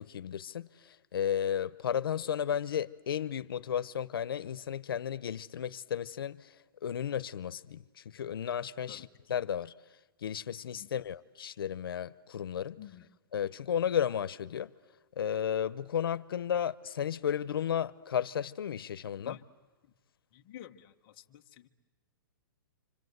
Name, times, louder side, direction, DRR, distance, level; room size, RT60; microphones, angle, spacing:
voice 1, 0.0-6.5 6.8-9.7 10.2-12.8 13.3-14.7 15.2-19.4, left 9 dB, 85° left, 0.8 m, -33 dB
voice 2, 12.8-13.1 19.2-19.4 20.3-21.7, left 11 dB, 25° left, 0.9 m, -50 dB
28.5 x 26.0 x 8.0 m
hypercardioid pair, 180°, 12 cm